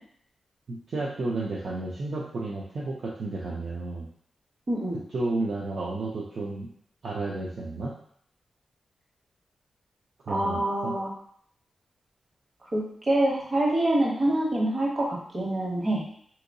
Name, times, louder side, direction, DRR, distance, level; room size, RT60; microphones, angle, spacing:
voice 1, 0.7-4.1 5.1-6.7 7.0-7.9 10.2-10.9, right 2 dB, 55° right, -5 dB, 0.5 m, -32 dB
voice 2, 4.7-5.0 10.3-11.1 12.7-16.0, right 1 dB, 35° right, -4 dB, 0.9 m, -26 dB
3.6 x 2.8 x 2.6 m, 0.63 s
wide cardioid pair, 155°, 0 cm